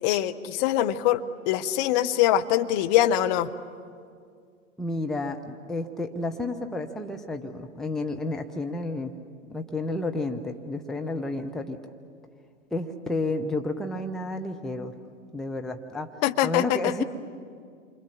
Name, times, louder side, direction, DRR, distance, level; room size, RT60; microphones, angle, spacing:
voice 1, 0.0-3.5 16.2-17.0, left 12 dB, 35° left, 8 dB, 1.0 m, -23 dB
voice 2, 4.8-9.1 9.5-11.8 12.7-14.9 15.3-16.1 16.4-17.0, left 2 dB, ahead, 4 dB, 0.7 m, -31 dB
29.0 x 25.0 x 7.3 m, 2.2 s
figure-of-eight pair, 105°, 39 cm